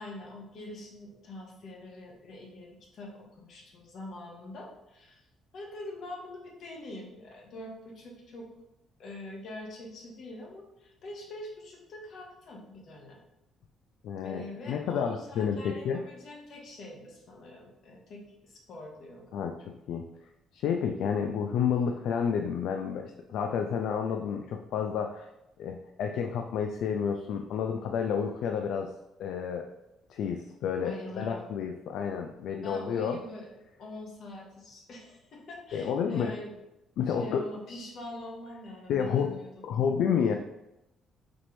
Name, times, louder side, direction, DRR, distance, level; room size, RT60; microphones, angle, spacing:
voice 1, 0.0-5.2 5.5-8.5 9.0-13.2 14.2-19.5 30.8-31.4 31.9-32.0 32.6-36.6 37.1-39.9, left 1 dB, 50° left, -1 dB, 1.0 m, -44 dB
voice 2, 14.0-16.0 19.3-20.1 20.5-25.3 25.6-28.9 29.2-29.7 30.1-33.2 35.7-36.3 37.0-37.5 38.9-40.4, left 7 dB, 70° left, 4 dB, 0.3 m, -30 dB
4.2 x 3.2 x 3.0 m, 0.89 s
cardioid pair, 145°, 0 cm